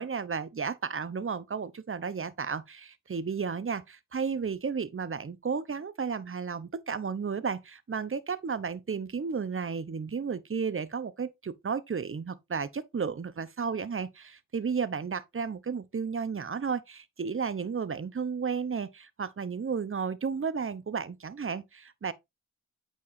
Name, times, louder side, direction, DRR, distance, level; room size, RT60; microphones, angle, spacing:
voice 1, 0.0-22.1, right 5 dB, 35° right, 0.9 m, -33 dB
8.5 x 4.7 x 2.7 m
cardioid pair, 50°, 35 cm